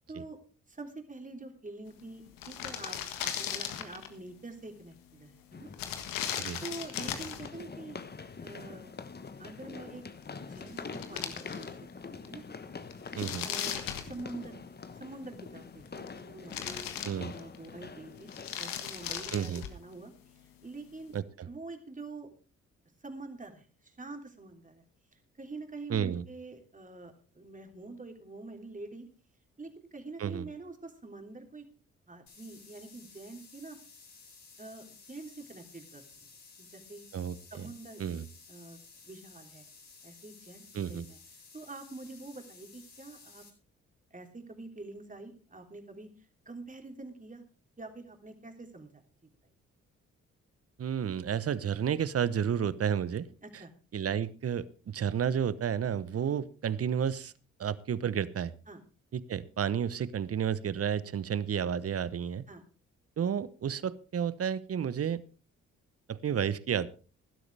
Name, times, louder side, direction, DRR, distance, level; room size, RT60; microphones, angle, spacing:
voice 1, 0.7-5.7 6.6-8.0 8.4-8.9 9.4-10.0 10.4-11.7 12.0-12.4 13.4-14.5 14.9-16.9 17.3-20.1 20.6-21.1 21.4-22.3 23.0-24.8 25.1-29.1 29.6-31.7 32.1-33.8 34.6-36.0 36.6-37.1 37.5-38.0 38.5-39.7 40.0-41.2 41.5-43.4 44.1-46.1 46.4-47.4 47.8-49.3 53.4-53.7 58.7-58.8 62.5-62.6, right 3 dB, 25° right, 4 dB, 3.3 m, -46 dB
sound 1, 2.0-2.1 2.3-4.2 5.7-7.5 10.2-10.3 10.6-11.9 12.2-12.3 12.9-14.7 15.6-16.2 16.5-17.7 18.2-19.8, left 9 dB, 75° left, 1.6 m, -37 dB
sound 2, 3.6-3.7 5.5-19.4, left 4 dB, 30° left, 1.2 m, -45 dB
voice 2, 13.2-13.5 17.0-17.3 19.3-19.6 21.1-21.5 25.9-26.2 30.2-30.5 37.1-37.7 38.0-38.3 40.7-41.1 50.8-53.3 53.9-57.3 57.6-58.5 59.1-62.4 63.2-65.2 66.1-66.9, right 8 dB, 45° right, 18 dB, 0.9 m, -31 dB
sound 3, 32.3-43.5, left 4 dB, 55° left, 4.5 m, -55 dB
16.5 x 12.0 x 3.4 m, 0.37 s
hypercardioid pair, 45°, 33 cm